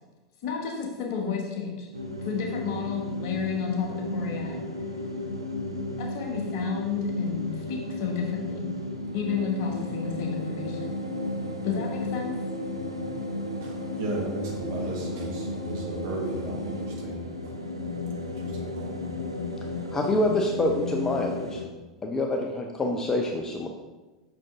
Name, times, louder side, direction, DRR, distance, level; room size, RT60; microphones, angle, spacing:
voice 1, 0.4-4.6 6.0-8.7 9.1-11.0 11.6-12.4, left 6 dB, 50° left, 0 dB, 1.4 m, -31 dB
sound 1, 1.9-21.6, left 1 dB, 85° right, 0.7 m, -33 dB
voice 2, 13.6-17.6 18.4-19.0, right 1 dB, 50° right, -2 dB, 1.7 m, -35 dB
voice 3, 19.9-21.6 22.0-23.7, left 1 dB, 20° left, 2 dB, 0.6 m, -26 dB
6.0 x 5.0 x 3.5 m, 1.2 s
figure-of-eight pair, 85°, 2 cm